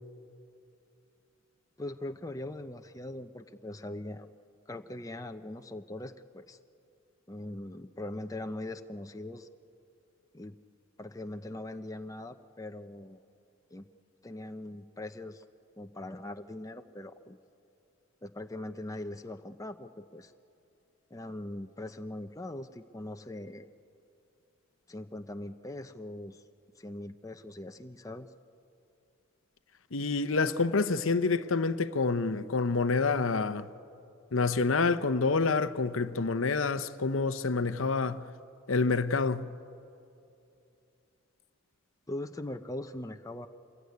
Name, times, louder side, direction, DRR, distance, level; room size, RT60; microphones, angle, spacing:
voice 1, 1.8-4.3 4.7-6.6 7.3-9.5 10.3-10.6 11.0-13.2 13.7-13.9 14.2-15.4 15.8-17.4 18.2-20.3 21.1-23.7 24.9-26.4 26.8-28.3 42.1-43.5, left 1 dB, 15° left, 0.7 m, -41 dB
voice 2, 29.9-33.7 34.3-38.2 38.7-39.5, left 4 dB, 70° left, 0.8 m, -27 dB
26.0 x 21.5 x 9.5 m
head